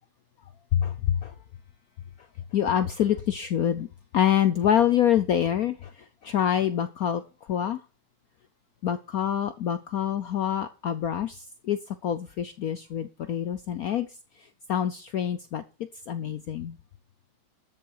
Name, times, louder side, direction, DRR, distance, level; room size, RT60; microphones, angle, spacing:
voice 1, 0.7-1.3 2.5-3.9 4.1-7.2 7.5-7.8 8.8-14.1 14.7-15.6 16.1-16.8, left 9 dB, 75° left, 0.8 m, -26 dB
13.0 x 7.4 x 4.8 m
omnidirectional pair, 2.3 m